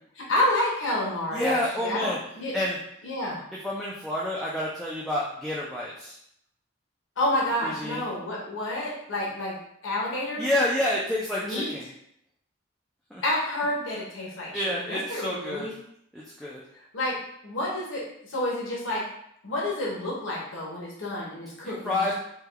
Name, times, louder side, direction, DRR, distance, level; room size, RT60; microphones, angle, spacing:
voice 1, 0.1-2.6 3.0-3.4 7.2-9.6 9.8-10.5 11.4-11.9 13.2-15.7 16.9-17.2 17.4-19.0 19.4-22.1, left 1 dB, 75° left, -4 dB, 0.9 m, -29 dB
voice 2, 1.3-2.2 2.5-2.8 3.6-6.2 7.6-8.0 10.4-11.8 13.1-13.2 14.5-15.7 16.1-16.6 21.6-22.1, left 1 dB, ahead, -6 dB, 0.3 m, -28 dB
3.4 x 2.2 x 3.3 m, 0.72 s
head